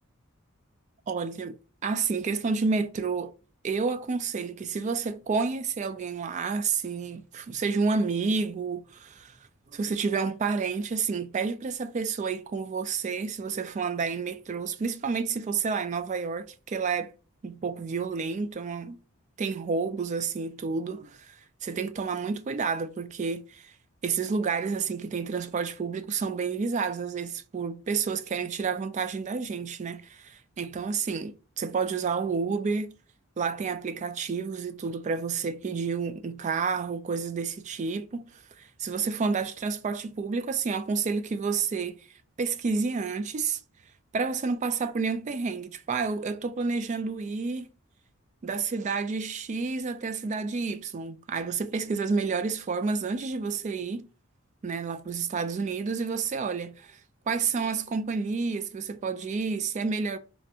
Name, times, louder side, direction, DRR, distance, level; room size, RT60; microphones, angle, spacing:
voice 1, 1.1-1.6 1.8-3.3 3.6-9.4 9.7-17.1 17.4-19.0 19.4-23.7 24.0-32.9 33.4-42.0 42.4-43.6 44.1-47.7 48.4-54.1 54.6-57.0 57.3-60.2, right 5 dB, 35° right, 0.3 m, -30 dB
3.1 x 2.5 x 2.6 m
head